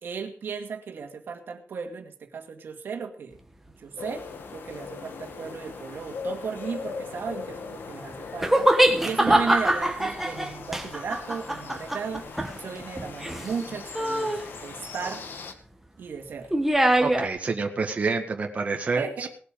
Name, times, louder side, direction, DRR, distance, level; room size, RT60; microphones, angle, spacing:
voice 1, 0.0-3.4 3.8-4.3 4.5-8.7 9.0-15.3 16.0-16.5 19.0-19.3, right 5 dB, 75° right, 5 dB, 2.1 m, -35 dB
sound 1, 4.0-15.5, left 5 dB, 70° left, 1.9 m, -40 dB
sound 2, 8.4-13.6 13.9-14.5 16.5-17.3, right 1 dB, 5° right, 1.7 m, -23 dB
voice 2, 17.0-19.3, right 4 dB, 40° right, 2 dB, 1.9 m, -28 dB
19.0 x 8.3 x 5.2 m, 0.42 s
wide cardioid pair, 150°, 4 cm